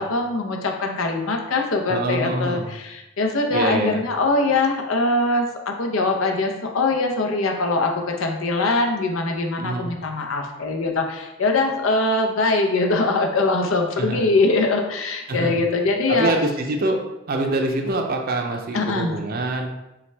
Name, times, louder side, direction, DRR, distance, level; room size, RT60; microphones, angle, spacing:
voice 1, 0.0-16.3 18.7-19.2, left 2 dB, 75° left, 2 dB, 0.7 m, -22 dB
voice 2, 1.9-2.6 3.5-4.0 9.6-9.9 14.0-14.2 15.3-15.5 16.1-17.0 17.3-19.7, right 2 dB, 45° right, 2 dB, 0.5 m, -25 dB
5.6 x 2.3 x 3.3 m, 0.95 s
head